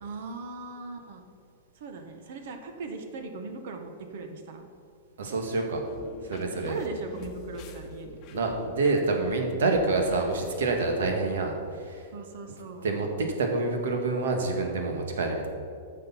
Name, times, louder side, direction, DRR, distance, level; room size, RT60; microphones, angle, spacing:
voice 1, 0.0-1.3 1.7-4.7 6.7-8.2 12.1-12.9, right 3 dB, 65° right, 5 dB, 1.3 m, -39 dB
voice 2, 5.2-5.8 6.2-6.8 8.3-12.1 12.8-15.5, right 3 dB, 90° right, 3 dB, 1.6 m, -27 dB
sound 1, 5.8-11.1, left 5 dB, 35° left, 0.9 m, -44 dB
10.5 x 6.6 x 5.7 m, 2.4 s
supercardioid pair, 150°, 0 cm